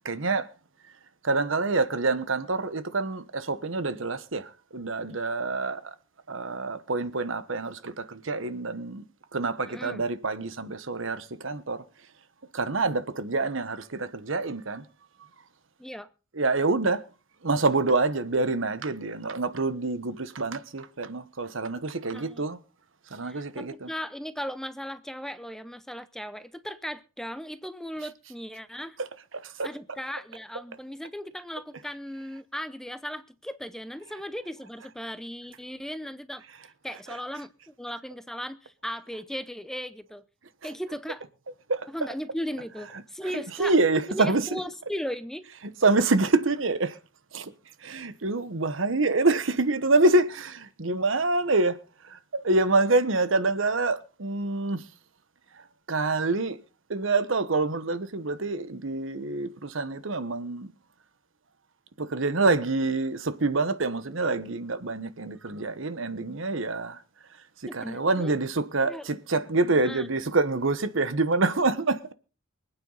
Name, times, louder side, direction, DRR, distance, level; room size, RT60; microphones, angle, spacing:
voice 1, 0.0-0.5 1.2-5.9 6.3-9.0 9.3-11.8 12.5-14.9 16.3-17.0 17.4-22.6 23.1-23.9 29.0-29.1 29.3-29.7 40.6-40.7 41.7-42.1 43.2-43.3 43.6-44.6 45.8-47.0 47.3-47.5 47.8-54.9 55.5-56.6 56.9-60.7 62.0-67.0 67.3-72.1, right 3 dB, 65° right, 1.1 m, -26 dB
voice 2, 9.7-10.0 15.8-16.1 22.1-22.4 23.2-29.0 29.6-36.4 36.8-40.3 40.6-41.2 41.9-43.7 44.1-45.5 67.7-68.4 68.8-69.1 69.7-70.1, equal, ahead, 0.6 m, -37 dB
24.5 x 9.1 x 4.0 m
head